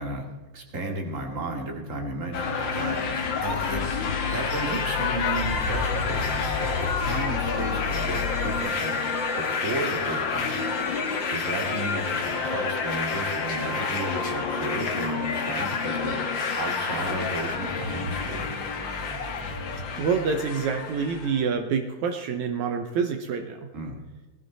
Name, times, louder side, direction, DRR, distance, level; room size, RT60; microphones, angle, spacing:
voice 1, 0.0-3.8 4.3-9.0 9.4-10.6 11.3-16.2 16.6-18.5 23.7-24.0, right 2 dB, 25° right, 2 dB, 2.0 m, -33 dB
sound 1, 2.3-21.4, left 4 dB, 50° left, 1.4 m, -29 dB
Vehicle horn car horn honking / Traffic noise roadway noise, 3.3-8.6, left 9 dB, 80° left, 2.5 m, -32 dB
Alarm, 5.4-13.1, right 1 dB, ahead, 1.0 m, -39 dB
voice 2, 20.0-23.7, right 6 dB, 85° right, 6 dB, 1.6 m, -27 dB
19.0 x 14.5 x 4.1 m, 1.2 s
omnidirectional pair, 4.7 m